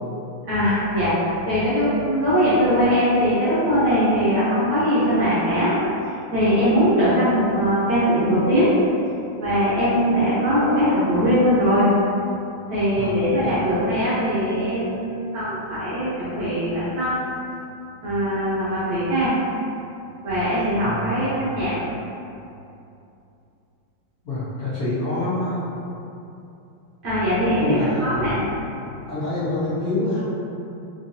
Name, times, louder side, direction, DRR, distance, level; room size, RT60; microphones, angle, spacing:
voice 1, 0.5-5.7 6.3-8.7 9.4-11.9 12.7-17.2 18.0-19.3 20.2-21.7 27.0-28.4, equal, 60° right, -11 dB, 1.1 m, -21 dB
voice 2, 13.0-13.6 20.8-21.1 24.2-25.7 27.6-28.3 29.1-30.2, left 2 dB, 60° left, -11 dB, 1.0 m, -27 dB
3.7 x 2.8 x 2.6 m, 2.7 s
omnidirectional pair, 2.3 m